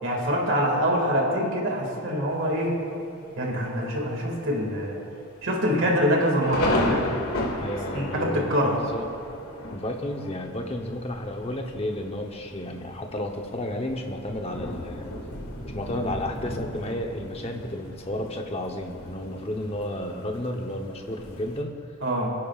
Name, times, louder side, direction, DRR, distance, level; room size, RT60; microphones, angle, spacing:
voice 1, 0.0-2.8 3.4-5.0 5.4-7.1 7.9-8.8 22.0-22.3, equal, 60° right, -1 dB, 2.1 m, -25 dB
Thunder, 2.3-2.8 3.4-3.5 3.8-4.2 4.5-4.6 5.3-21.6, left 1 dB, 90° left, 1.7 m, -34 dB
voice 2, 7.6-9.0 9.7-15.1 15.7-21.7, left 1 dB, 25° left, 3 dB, 0.9 m, -32 dB
26.5 x 10.5 x 2.4 m, 2.6 s
head